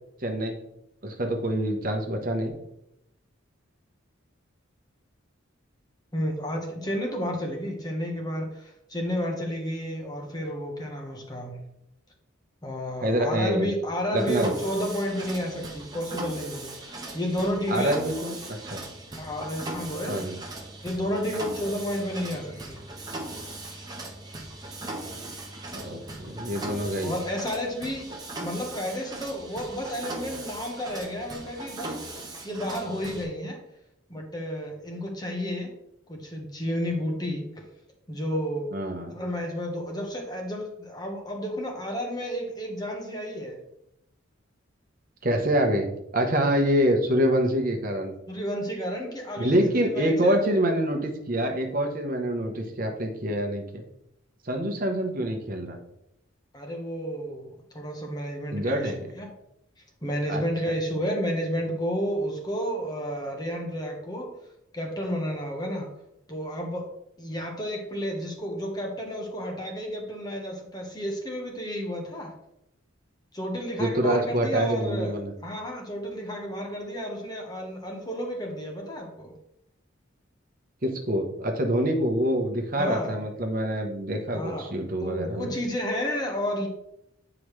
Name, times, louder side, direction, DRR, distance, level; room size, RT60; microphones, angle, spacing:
voice 1, 0.2-0.6 1.0-2.5 13.0-13.7 14.1-14.5 17.7-18.8 20.1-20.4 25.7-27.1 38.7-39.1 45.2-45.9 46.1-48.1 49.4-53.8 54.4-55.8 58.5-59.1 60.3-60.4 73.8-75.3 80.8-85.5, equal, 40° right, 3 dB, 0.9 m, -26 dB
voice 2, 6.1-11.6 12.6-18.0 19.2-20.2 20.8-22.8 27.0-28.1 28.4-32.0 32.4-33.6 34.1-35.7 36.1-37.4 38.1-38.7 39.1-43.6 48.3-50.6 56.5-59.3 60.0-64.3 64.7-65.9 66.3-66.9 67.2-72.3 73.3-79.3 82.8-83.2 84.3-84.7 85.0-86.7, equal, 20° left, 1 dB, 1.1 m, -31 dB
Mechanisms, 14.2-33.2, right 2 dB, 20° right, 1.0 m, -39 dB
9.2 x 4.9 x 3.2 m, 0.81 s
head